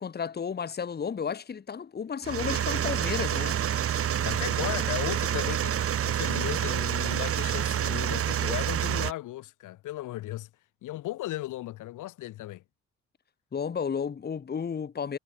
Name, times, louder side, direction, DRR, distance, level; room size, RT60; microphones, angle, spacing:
voice 1, 0.0-3.6 4.1-4.3 13.5-15.2, left 6 dB, 35° left, 1.2 m, -33 dB
sound 1, 2.2-9.1, right 9 dB, 50° right, 0.9 m, -28 dB
voice 2, 4.2-10.5 10.8-12.6, left 15 dB, 85° left, 1.5 m, -36 dB
cardioid pair, 90°, 30 cm